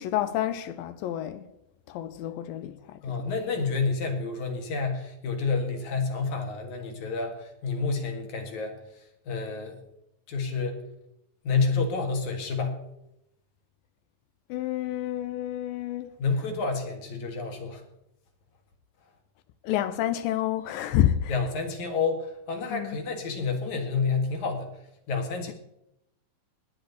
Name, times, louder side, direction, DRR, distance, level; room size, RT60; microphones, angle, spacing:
voice 1, 0.0-1.5 1.9-3.0 14.5-16.1 19.6-21.4 22.7-23.0, left 12 dB, 80° left, 2.3 m, -29 dB
voice 2, 3.0-8.8 9.3-9.8 10.3-10.8 11.4-12.8 16.2-17.8 21.3-24.7 25.1-25.5, left 4 dB, 60° left, 2.9 m, -29 dB
19.0 x 10.0 x 4.0 m
omnidirectional pair, 4.3 m